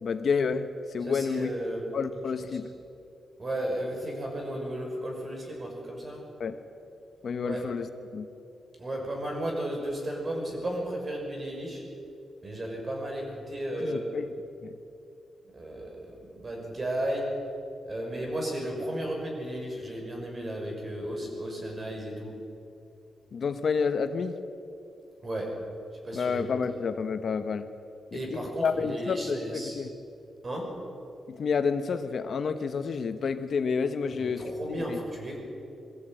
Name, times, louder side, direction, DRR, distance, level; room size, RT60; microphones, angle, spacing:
voice 1, 0.0-1.5 1.9-2.7 6.4-6.6 7.2-8.3 13.8-14.3 14.6-14.7 23.3-24.4 26.1-27.6 28.1-29.9 31.3-35.0, left 5 dB, 55° left, 9 dB, 1.0 m, -29 dB
voice 2, 1.0-1.9 3.4-6.3 7.4-7.7 8.8-11.8 12.4-14.0 15.5-17.4 17.8-22.4 25.2-25.6 26.0-26.4 28.1-29.8 30.4-30.8 34.1-35.4, right 1 dB, 35° right, 0 dB, 5.8 m, -34 dB
22.0 x 14.5 x 9.0 m, 2.7 s
cardioid pair, 120°, 0 cm